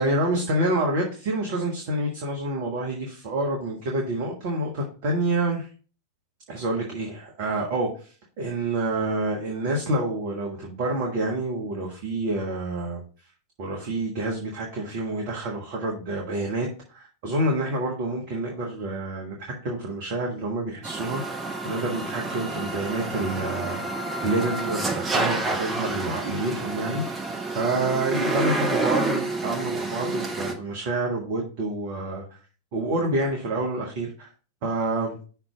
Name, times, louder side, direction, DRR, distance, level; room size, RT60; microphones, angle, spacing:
voice 1, 0.0-5.7 6.5-13.0 13.6-19.4 19.6-23.8 24.2-27.0 27.4-32.4 32.7-34.3 34.6-35.2, right 2 dB, 45° right, -1 dB, 1.4 m, -28 dB
sound 1, 20.8-30.5, right 3 dB, 15° right, 1.1 m, -29 dB
5.8 x 3.5 x 5.9 m, 0.39 s
figure-of-eight pair, 90°, 0 cm